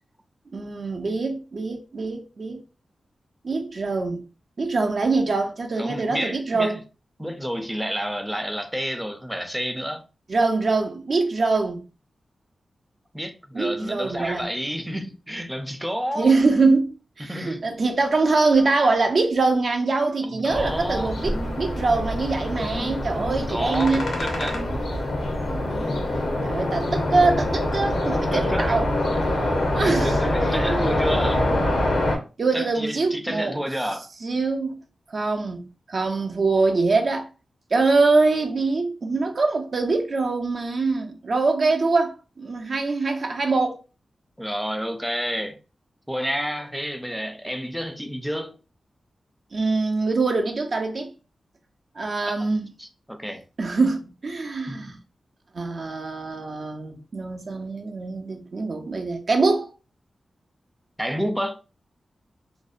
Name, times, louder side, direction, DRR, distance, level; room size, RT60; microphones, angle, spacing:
voice 1, 0.5-2.6 3.4-4.2 4.6-6.8 10.3-11.8 13.5-14.5 16.2-16.9 17.2-24.1 25.5-26.1 26.4-28.8 29.2-29.4 29.7-30.9 32.4-33.6 34.2-34.8 35.1-37.3 37.7-43.8 49.5-51.1 52.0-52.7 53.6-55.0 55.5-59.7, right 3 dB, 60° right, 0.5 m, -23 dB
voice 2, 5.8-6.8 7.2-10.0 13.1-16.3 17.2-17.7 20.2-21.6 22.6-24.9 28.3-28.7 29.8-31.5 32.5-34.1 44.4-45.6 46.1-48.6 52.8-53.4 54.7-55.0 61.0-61.6, equal, 5° right, 0.4 m, -30 dB
sound 1, 20.5-32.2, left 1 dB, 90° left, 0.6 m, -25 dB
2.5 x 2.1 x 2.4 m
cardioid pair, 60°, 0 cm